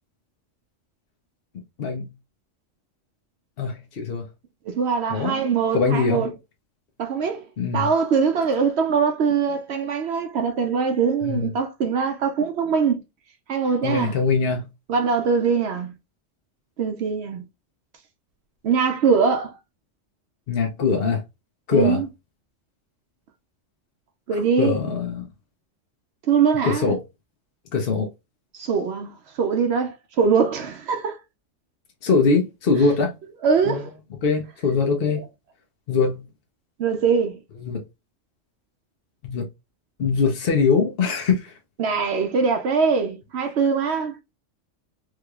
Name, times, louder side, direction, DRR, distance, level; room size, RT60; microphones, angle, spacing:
voice 1, 1.8-2.1 3.6-4.3 5.1-5.3 5.7-6.3 7.6-7.9 11.2-11.5 13.8-14.7 20.5-21.2 21.7-22.0 24.6-25.2 26.6-27.0 27.7-28.1 32.0-33.1 33.7-33.8 34.2-35.2 35.9-36.2 37.6-37.8 39.2-39.5 40.0-41.5, left 4 dB, 55° left, 0.9 m, -22 dB
voice 2, 4.7-6.3 7.0-7.4 7.7-13.0 13.5-14.2 14.9-15.9 16.8-17.4 18.6-19.5 21.7-22.1 24.3-24.8 26.3-27.0 28.5-29.1 29.4-31.2 33.4-33.9 36.8-37.4 41.8-44.2, right 6 dB, 65° right, 0.8 m, -22 dB
3.6 x 3.2 x 2.2 m
omnidirectional pair, 1.3 m